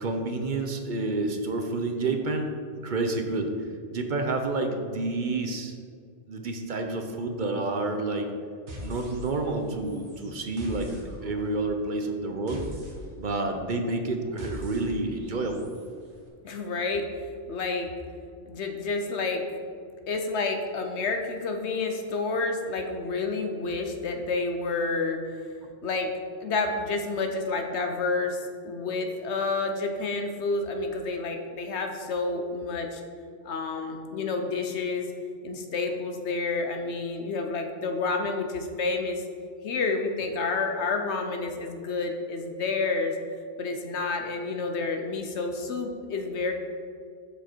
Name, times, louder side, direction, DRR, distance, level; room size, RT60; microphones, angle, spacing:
voice 1, 0.0-2.5 2.8-5.8 6.3-8.3 8.8-12.7 13.2-15.7, right 2 dB, 50° right, 5 dB, 0.8 m, -29 dB
sound 1, 8.7-9.6 9.8-15.9, left 1 dB, 70° right, 1.7 m, -42 dB
voice 2, 16.4-17.1 17.5-17.9 18.5-19.6 20.1-25.2 25.8-26.1 26.4-33.0 33.4-35.1 35.4-39.2 39.6-43.2 43.6-46.5, left 3 dB, 70° left, 5 dB, 1.1 m, -29 dB
7.2 x 6.9 x 4.5 m, 2.2 s
omnidirectional pair, 1.2 m